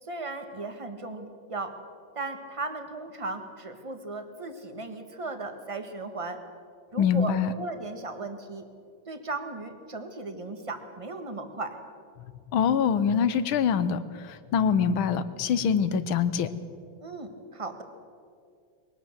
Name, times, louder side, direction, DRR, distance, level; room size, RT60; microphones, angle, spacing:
voice 1, 0.0-1.8 2.1-6.4 6.9-8.7 9.1-11.8 17.0-17.8, right 3 dB, 20° right, 7 dB, 1.4 m, -36 dB
voice 2, 7.0-7.5 12.2-16.5, left 7 dB, 80° left, 13 dB, 1.7 m, -25 dB
22.0 x 18.0 x 7.4 m, 2.3 s
omnidirectional pair, 2.2 m